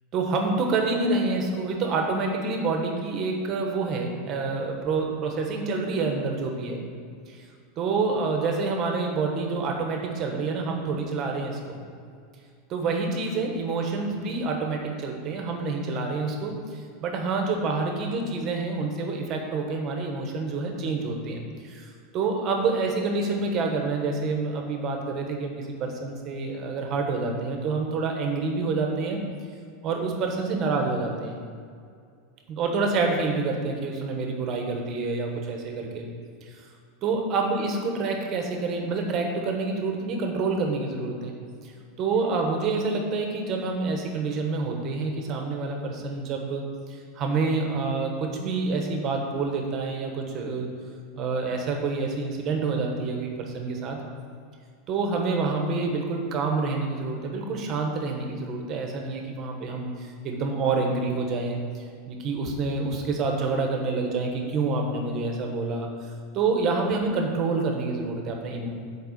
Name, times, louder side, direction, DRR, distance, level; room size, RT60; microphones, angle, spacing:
voice 1, 0.1-6.8 7.3-7.4 7.8-11.8 12.7-29.2 29.8-31.4 32.5-36.1 36.5-36.6 37.0-41.3 41.6-41.7 42.0-50.7 51.2-54.0 54.9-65.9 66.3-68.7, right 3 dB, 35° right, 2 dB, 1.2 m, -27 dB
8.0 x 4.8 x 6.5 m, 2.2 s
supercardioid pair, 155°, 0 cm